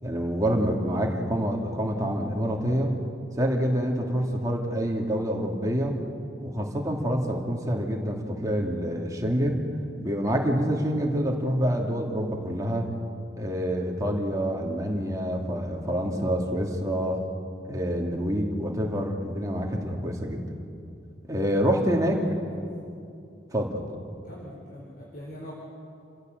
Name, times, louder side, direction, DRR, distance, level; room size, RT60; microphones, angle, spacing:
voice 1, 0.0-2.9 3.4-6.0 6.4-9.6 10.0-12.9 13.4-17.2 17.6-20.4 21.3-22.2 23.5-23.8, equal, 20° right, 0 dB, 2.7 m, -27 dB
voice 2, 21.7-22.6 24.2-25.5, equal, 50° left, -3 dB, 4.5 m, -42 dB
29.0 x 16.0 x 8.0 m, 2.5 s
head